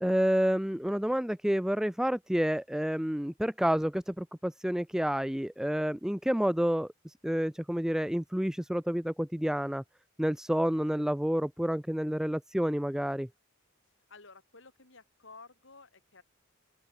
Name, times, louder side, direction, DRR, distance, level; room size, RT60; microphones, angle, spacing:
voice 1, 0.0-9.8 10.2-13.3, equal, 5° right, 0.5 m, -29 dB
voice 2, 14.1-16.2, left 3 dB, 65° left, 4.7 m, -53 dB
open air
head